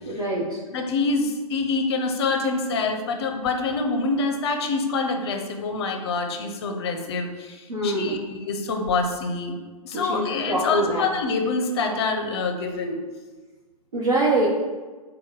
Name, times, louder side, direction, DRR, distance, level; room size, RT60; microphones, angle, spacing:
voice 1, 0.1-0.6 7.7-8.2 9.9-11.0 13.9-14.5, right 1 dB, 70° right, -8 dB, 0.9 m, -24 dB
voice 2, 0.7-9.6 9.8-13.0, left 3 dB, 45° left, 4 dB, 0.5 m, -26 dB
3.6 x 2.2 x 3.9 m, 1.3 s
figure-of-eight pair, 115°, 19 cm